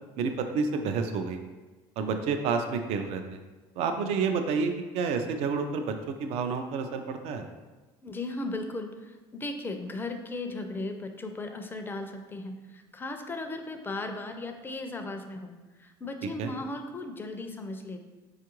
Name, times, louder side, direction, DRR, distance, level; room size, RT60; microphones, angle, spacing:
voice 1, 0.2-1.4 2.0-3.4 3.8-7.4 16.4-16.5, right 5 dB, 60° right, 6 dB, 0.4 m, -29 dB
voice 2, 8.0-15.5 15.8-18.0, left 2 dB, 20° left, 5 dB, 0.4 m, -36 dB
4.5 x 2.4 x 3.0 m, 1.2 s
supercardioid pair, 95°, 12 cm